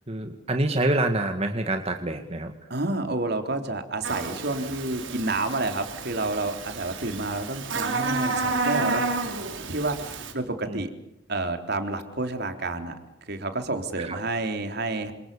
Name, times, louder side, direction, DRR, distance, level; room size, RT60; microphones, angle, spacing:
voice 1, 0.1-2.5 10.7-10.8 14.0-14.2, right 2 dB, 35° right, 6 dB, 2.1 m, -26 dB
voice 2, 2.7-9.1 9.7-10.9 11.3-12.9 13.3-15.1, right 2 dB, 60° right, 7 dB, 3.7 m, -29 dB
Buzz, 4.0-10.3, right 3 dB, 85° right, 5.1 m, -30 dB
29.0 x 27.0 x 6.9 m, 0.80 s
head